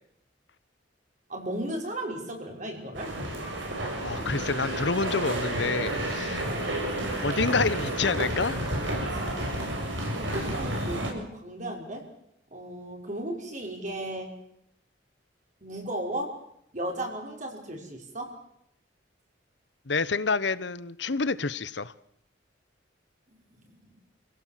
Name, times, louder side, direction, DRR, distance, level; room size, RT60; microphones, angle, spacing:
voice 1, 1.3-3.2 6.5-6.8 9.1-9.5 10.1-12.1 12.5-14.3 15.6-16.4 16.7-18.4 23.6-23.7, right 1 dB, 40° right, 2 dB, 5.6 m, -35 dB
sound 1, 2.9-11.1, right 1 dB, 85° right, 7.6 m, -30 dB
voice 2, 4.0-6.4 7.2-8.6 19.9-21.9, left 4 dB, 70° left, 17 dB, 1.0 m, -28 dB
29.0 x 17.0 x 7.6 m, 0.77 s
head